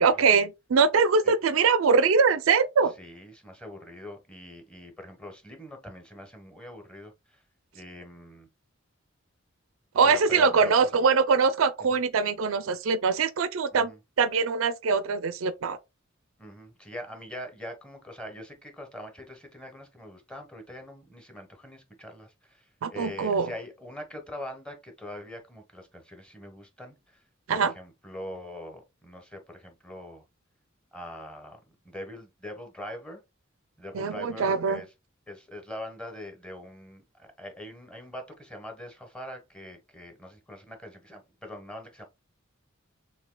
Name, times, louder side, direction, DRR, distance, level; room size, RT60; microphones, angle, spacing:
voice 1, 0.0-2.9 9.9-13.9 14.2-15.8 22.8-23.5 27.5-27.7 33.9-34.8, right 5 dB, 80° right, 0.4 m, -23 dB
voice 2, 3.0-7.4 7.7-8.5 10.0-11.0 11.8-12.0 13.7-14.0 16.4-27.2 27.5-30.2 30.9-33.2 33.8-34.9 35.3-42.0, left 1 dB, 5° left, 1.1 m, -43 dB
6.5 x 2.7 x 2.2 m
head